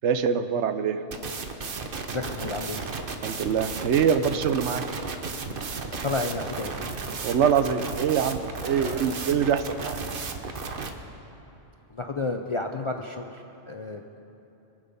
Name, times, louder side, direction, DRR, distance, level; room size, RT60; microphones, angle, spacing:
voice 1, 0.0-1.0 3.2-4.8 7.2-10.0, right 7 dB, 75° right, 10 dB, 1.0 m, -24 dB
sound 1, 1.1-10.9, right 4 dB, 50° right, 1.0 m, -34 dB
voice 2, 2.1-2.9 6.0-6.8 8.7-9.4 11.9-14.0, left 3 dB, 40° left, 4 dB, 0.4 m, -32 dB
23.0 x 7.9 x 5.4 m, 3.0 s
omnidirectional pair, 1.2 m